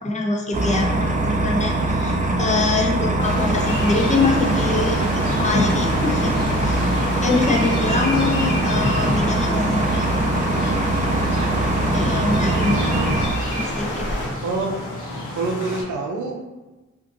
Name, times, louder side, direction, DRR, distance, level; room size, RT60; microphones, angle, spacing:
voice 1, 0.0-6.9 7.2-10.1 10.6-10.7 11.9-12.8 13.5-14.1, left 3 dB, 25° left, 0 dB, 0.5 m, -24 dB
sound 1, 0.5-13.3, right 2 dB, 25° right, 0.4 m, -22 dB
sound 2, 3.2-14.3, equal, 40° left, 0.9 m, -30 dB
sound 3, 3.6-15.8, left 1 dB, 90° left, 0.8 m, -31 dB
voice 2, 12.2-13.2 14.4-14.8 15.3-16.3, right 3 dB, 80° right, 1 dB, 0.5 m, -27 dB
2.5 x 2.5 x 2.6 m, 1.1 s
cardioid pair, 55°, 29 cm